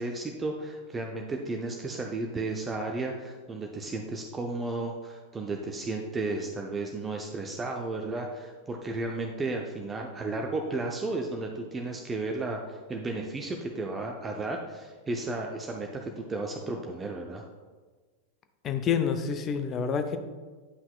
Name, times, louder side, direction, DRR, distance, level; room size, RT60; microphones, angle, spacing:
voice 1, 0.0-17.4, right 2 dB, 15° right, 2 dB, 0.5 m, -33 dB
voice 2, 18.6-20.2, left 6 dB, 30° left, 8 dB, 0.5 m, -28 dB
9.6 x 5.6 x 2.3 m, 1.4 s
figure-of-eight pair, 90°, 0 cm